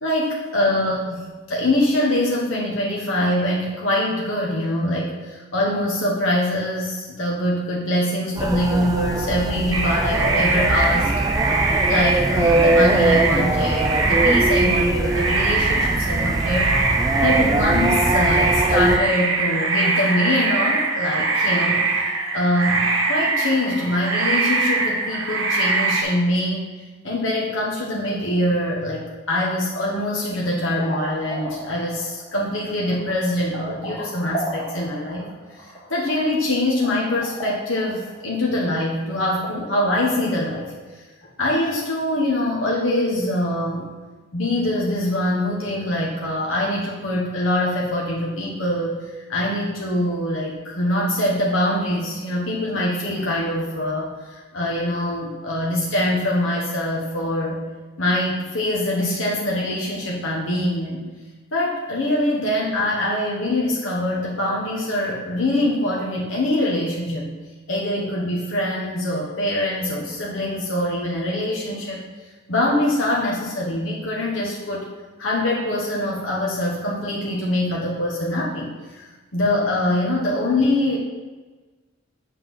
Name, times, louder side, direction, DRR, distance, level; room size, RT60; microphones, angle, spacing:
voice 1, 0.0-11.1 11.9-16.7 17.2-22.0 22.3-26.7 27.0-41.0 41.4-43.9 44.3-49.0 49.3-57.6 58.0-61.0 61.5-67.3 67.7-72.0 72.5-74.9 75.2-81.0, left 1 dB, 75° left, -3 dB, 1.0 m, -24 dB
sound 1, 8.4-19.0, right 2 dB, 20° right, 0.3 m, -22 dB
sound 2, 9.7-26.0, right 3 dB, 80° right, 1.0 m, -22 dB
sound 3, 30.6-40.0, right 1 dB, 25° left, 1.9 m, -36 dB
7.4 x 3.7 x 6.0 m, 1.3 s
head